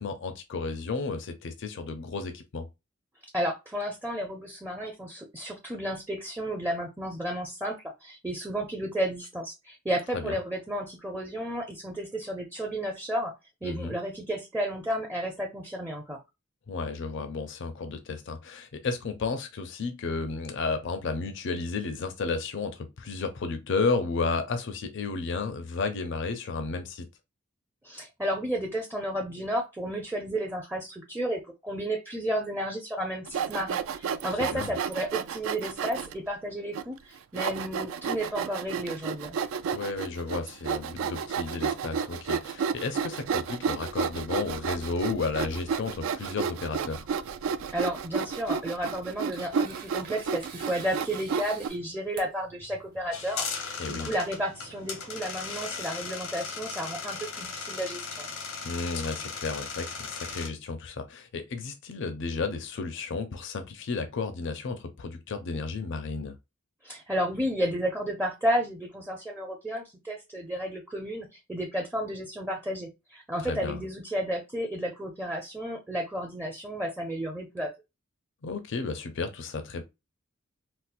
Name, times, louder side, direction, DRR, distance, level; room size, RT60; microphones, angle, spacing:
voice 1, 0.0-2.7 10.1-10.4 13.6-13.9 16.7-27.1 34.3-34.7 39.7-47.1 53.8-54.1 58.6-66.3 73.4-73.8 78.4-79.8, left 4 dB, 60° left, 0.5 m, -32 dB
voice 2, 3.3-13.3 13.6-16.2 27.8-39.4 47.7-58.3 66.8-77.7, equal, 10° right, 0.5 m, -32 dB
Sawing, 33.3-36.1 36.7-36.8 37.4-51.7, right 6 dB, 70° right, 0.3 m, -31 dB
Tearing, 48.6-55.4, right 4 dB, 45° right, 1.2 m, -49 dB
sound 1, 53.1-60.5, left 5 dB, 90° left, 0.9 m, -37 dB
4.2 x 2.0 x 2.4 m
head